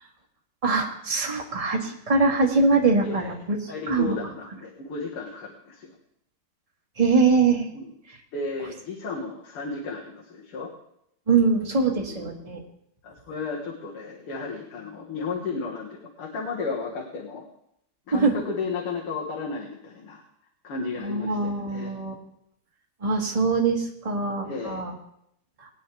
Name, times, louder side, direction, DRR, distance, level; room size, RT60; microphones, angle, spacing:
voice 1, 0.6-4.2 7.0-7.7 11.3-12.6 18.1-18.3 21.0-22.1 23.0-24.9 25.6-25.7, right 4 dB, 20° right, 0 dB, 1.6 m, -23 dB
voice 2, 3.0-3.3 3.7-5.9 7.7-7.9 8.3-10.7 11.9-12.3 13.0-17.4 18.1-20.2 20.6-21.9 24.4-24.8, left 4 dB, 80° left, -2 dB, 2.5 m, -34 dB
19.5 x 9.6 x 3.5 m, 0.75 s
omnidirectional pair, 2.4 m